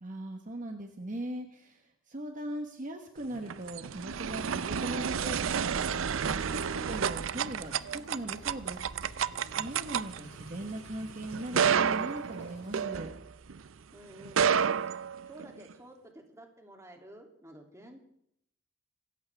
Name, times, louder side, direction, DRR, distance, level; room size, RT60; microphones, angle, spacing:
voice 1, 0.0-13.1, right 1 dB, 40° right, 4 dB, 1.4 m, -40 dB
sound 1, 3.2-13.6 14.2-15.7, right 7 dB, 70° right, 0.5 m, -31 dB
Engine, 6.8-12.8, left 1 dB, 60° left, 2.1 m, -55 dB
voice 2, 13.9-14.8 15.2-18.0, right 1 dB, 15° right, 2 dB, 2.8 m, -51 dB
26.0 x 14.0 x 3.5 m, 0.71 s
head